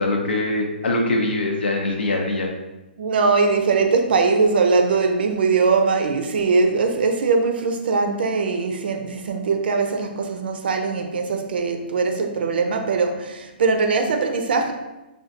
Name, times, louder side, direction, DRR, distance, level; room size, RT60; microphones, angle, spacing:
voice 1, 0.0-2.5, left 2 dB, 85° left, 1 dB, 0.6 m, -23 dB
voice 2, 3.0-14.7, right 4 dB, 65° right, 5 dB, 0.5 m, -21 dB
4.4 x 2.3 x 2.5 m, 1.0 s
hypercardioid pair, 145°, 6 cm